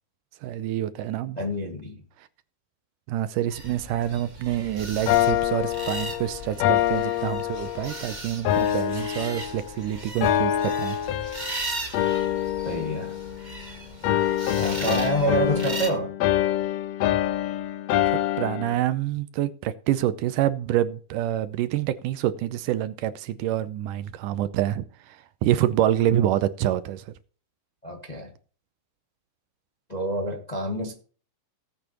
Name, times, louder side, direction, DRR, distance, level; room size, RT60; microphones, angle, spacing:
voice 1, 0.4-1.4 3.1-11.0 18.4-27.1, right 12 dB, 80° right, 2.2 m, -27 dB
voice 2, 1.3-2.0 12.6-13.1 14.5-16.1 27.8-28.3 29.9-31.0, right 1 dB, 20° left, 1.1 m, -27 dB
sound 1, 3.5-15.9, right 2 dB, 60° right, 0.4 m, -38 dB
sound 2, 5.1-8.0 8.5-9.8 10.2-11.6 11.9-13.7 14.0-18.8, left 12 dB, 90° left, 1.4 m, -25 dB
18.0 x 8.4 x 3.0 m
omnidirectional pair, 3.8 m